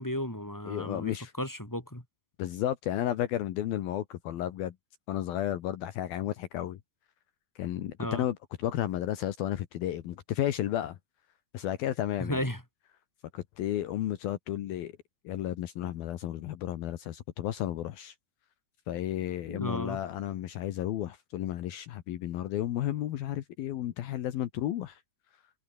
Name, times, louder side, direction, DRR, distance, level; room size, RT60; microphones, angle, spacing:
voice 1, 0.0-2.0 8.0-8.2 12.2-12.6 19.5-20.0, left 1 dB, 5° left, 3.4 m, -34 dB
voice 2, 0.7-1.3 2.4-4.7 5.1-6.8 7.6-11.0 11.5-12.4 13.3-14.9 15.2-18.1 18.9-25.0, left 12 dB, 70° left, 3.0 m, -33 dB
omnidirectional pair, 4.7 m